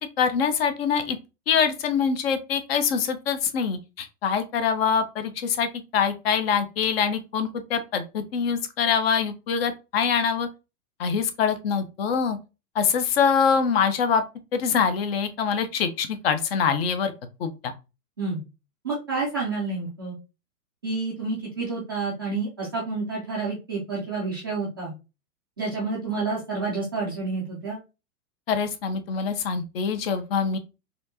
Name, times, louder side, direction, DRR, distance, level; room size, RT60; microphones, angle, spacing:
voice 1, 0.2-1.2 1.5-10.5 11.0-12.4 12.7-14.2 14.5-17.1 17.4-17.7 28.5-30.6, left 6 dB, 40° left, 9 dB, 0.6 m, -24 dB
voice 2, 18.8-20.2 20.8-24.9 25.6-27.8, right 3 dB, 15° right, -6 dB, 0.3 m, -29 dB
4.3 x 2.8 x 2.7 m, 0.28 s
hypercardioid pair, 140°, 48 cm